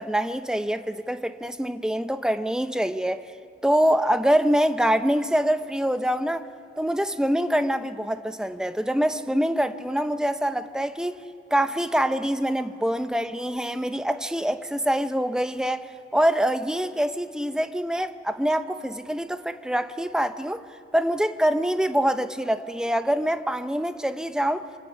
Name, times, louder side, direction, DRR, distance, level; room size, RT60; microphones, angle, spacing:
voice 1, 0.0-3.2 3.6-6.5 6.8-11.2 11.5-15.9 16.1-20.6 20.9-24.7, equal, 5° right, 0.6 m, -25 dB
26.5 x 26.5 x 5.6 m
head